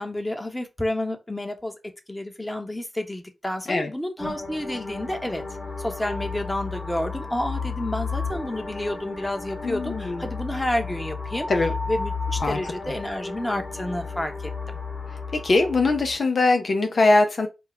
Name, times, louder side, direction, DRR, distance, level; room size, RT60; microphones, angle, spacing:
voice 1, 0.0-1.7 2.1-5.4 5.8-11.5 11.9-14.5, left 1 dB, 15° left, 1.1 m, -30 dB
sound 1, 4.2-16.2, left 4 dB, 45° left, 2.2 m, -33 dB
voice 2, 9.6-10.2 11.5-11.7 12.4-12.9 15.3-17.5, left 2 dB, 70° left, 0.7 m, -22 dB
4.5 x 2.3 x 4.7 m
cardioid pair, 45°, 0 cm